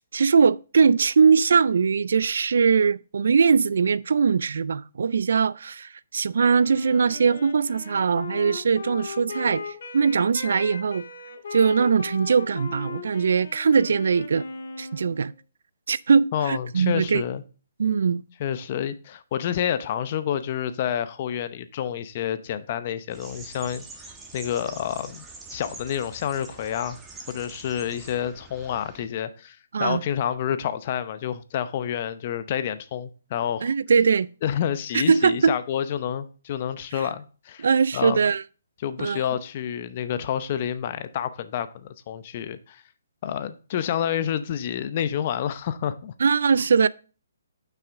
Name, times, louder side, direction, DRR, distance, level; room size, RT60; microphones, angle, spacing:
voice 1, 0.0-11.0 11.5-14.4 14.8-15.3 15.9-17.2 17.8-18.2 29.7-30.0 33.6-34.3 34.9-35.5 37.6-38.4 39.0-39.2 46.2-46.9, right 5 dB, 70° right, 0.3 m, -21 dB
Wind instrument woodwind instrument, 6.5-15.4, left 4 dB, 65° left, 1.8 m, -38 dB
voice 2, 16.3-17.4 18.4-23.8 24.3-25.2 25.5-27.0 27.3-33.7 34.4-37.7 37.9-38.2 38.8-42.8 43.2-46.1, left 9 dB, 40° left, 0.7 m, -29 dB
Voegel Froesche Person arbeitet, 23.1-29.1, right 3 dB, 10° right, 1.1 m, -45 dB
8.8 x 5.9 x 3.6 m
hypercardioid pair, 150°, 0 cm